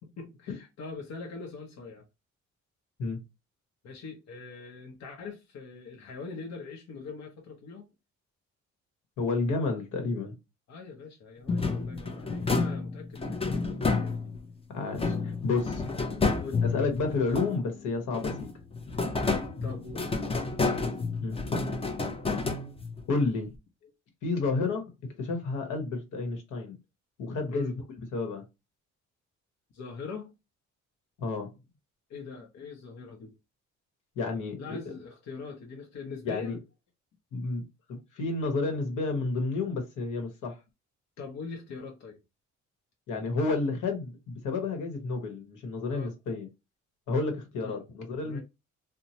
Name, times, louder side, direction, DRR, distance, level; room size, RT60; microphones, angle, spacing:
voice 1, 0.0-2.0 3.8-7.9 10.7-14.3 16.4-16.6 19.6-20.0 27.5-27.7 29.7-30.3 32.1-33.3 34.6-36.6 41.2-42.2 45.9-46.1 47.6-47.8 48.2-48.4, left 4 dB, 60° left, 0.8 m, -42 dB
voice 2, 9.2-10.3 14.7-16.0 16.7-18.5 21.2-21.4 23.1-23.5 24.2-24.9 25.2-26.8 27.2-27.7 28.0-28.4 31.2-31.5 34.2-34.8 36.2-36.6 37.3-37.6 37.9-40.6 43.1-46.5 47.1-48.4, left 3 dB, 80° left, 1.1 m, -30 dB
sound 1, 11.5-14.5 15.0-17.8 18.1-23.1, left 4 dB, 20° left, 0.5 m, -30 dB
2.9 x 2.1 x 2.7 m
cardioid pair, 90°, 30 cm